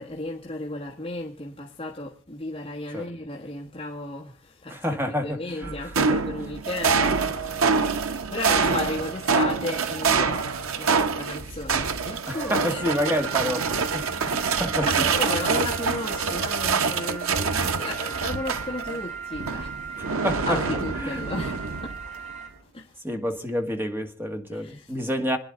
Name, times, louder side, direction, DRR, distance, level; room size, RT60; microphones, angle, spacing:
voice 1, 0.0-5.0 5.2-7.3 8.3-10.5 10.8-12.8 14.3-19.8 20.4-22.0 22.7-22.9 24.5-25.0, left 2 dB, 25° left, 1.6 m, -34 dB
voice 2, 4.7-5.7 12.3-15.1 20.0-20.6 21.0-21.2 23.0-25.4, equal, 10° right, 1.9 m, -28 dB
sound 1, 5.6-19.0 19.4-22.1, right 5 dB, 90° right, 1.0 m, -26 dB
sound 2, 12.7-22.5, right 6 dB, 35° right, 4.8 m, -38 dB
27.0 x 10.5 x 3.8 m
head